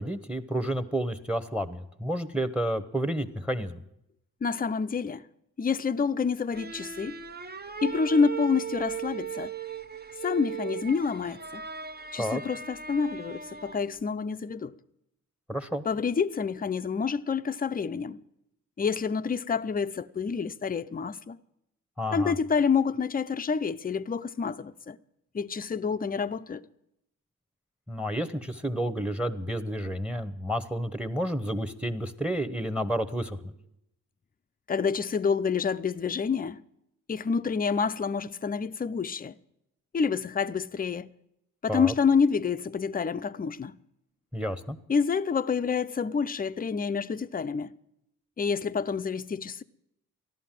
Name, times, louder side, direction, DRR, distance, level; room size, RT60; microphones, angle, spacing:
voice 1, 0.0-3.8 12.2-12.4 15.5-15.8 22.0-22.3 27.9-33.5 41.7-41.9 44.3-44.8, equal, 5° right, 1.1 m, -30 dB
voice 2, 4.4-5.2 5.6-7.2 7.8-9.5 10.2-11.6 12.1-14.7 15.9-18.2 18.8-21.4 22.1-25.0 25.3-26.7 34.7-36.6 37.1-39.3 39.9-41.1 41.6-43.8 44.9-47.7 48.4-49.6, left 5 dB, 25° left, 0.6 m, -28 dB
sound 1, 6.5-14.0, right 7 dB, 25° right, 0.7 m, -38 dB
14.0 x 11.0 x 7.5 m
supercardioid pair, 55°, 37 cm